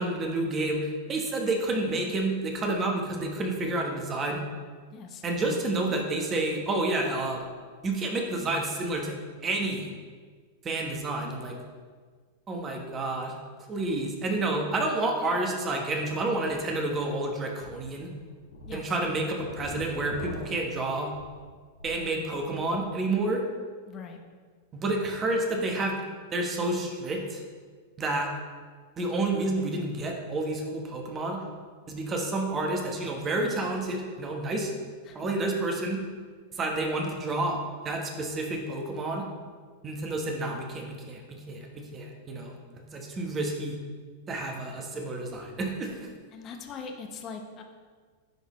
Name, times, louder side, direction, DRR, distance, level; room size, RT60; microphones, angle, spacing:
voice 1, 0.0-4.4 5.2-7.4 7.8-9.2 9.4-9.9 10.6-11.6 12.5-13.3 13.7-18.1 18.7-21.1 21.8-23.4 24.7-26.0 26.3-27.4 28.0-28.3 29.0-31.4 31.9-34.7 35.1-36.0 36.5-39.3 39.8-42.5 42.9-43.8 44.3-46.1, right 2 dB, 25° right, 2 dB, 1.2 m, -29 dB
voice 2, 4.9-5.2 18.7-18.8 23.9-24.2 35.0-35.2 46.3-47.6, left 5 dB, 35° left, 4 dB, 0.8 m, -41 dB
sound 1, 17.6-17.8 18.3-22.1 22.4-22.9, left 2 dB, 80° left, 1.7 m, -42 dB
10.5 x 3.9 x 3.1 m, 1.6 s
hypercardioid pair, 100°, 0 cm